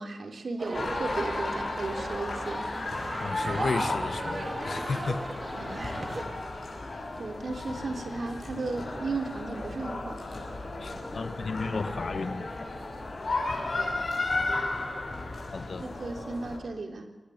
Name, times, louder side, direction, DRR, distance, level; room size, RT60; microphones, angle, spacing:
voice 1, 0.0-2.7 5.5-5.9 7.2-10.2 13.7-14.2 15.8-17.1, right 3 dB, 75° right, 3.4 m, -35 dB
sound 1, 0.6-6.2, right 2 dB, 40° right, 3.1 m, -37 dB
sound 2, 0.7-16.6, left 2 dB, 55° left, 6.8 m, -34 dB
voice 2, 3.2-5.3 10.8-12.5 15.5-15.9, left 4 dB, 75° left, 1.4 m, -33 dB
23.5 x 19.5 x 8.6 m
wide cardioid pair, 90°, 0 cm